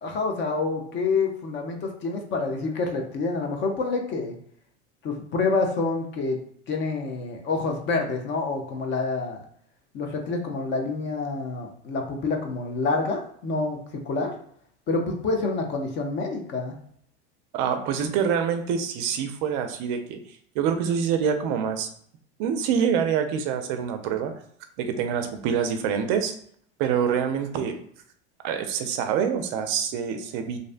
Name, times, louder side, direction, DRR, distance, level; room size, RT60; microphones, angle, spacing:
voice 1, 0.0-4.4 5.0-6.4 6.7-9.4 9.9-14.3 14.9-16.7, left 3 dB, 35° left, 3 dB, 0.4 m, -27 dB
voice 2, 17.5-20.2 20.6-21.9 22.4-24.3 24.8-26.3 26.8-27.8 28.4-30.6, right 7 dB, 50° right, 7 dB, 0.4 m, -26 dB
2.6 x 2.1 x 2.4 m, 0.64 s
hypercardioid pair, 105°, 35 cm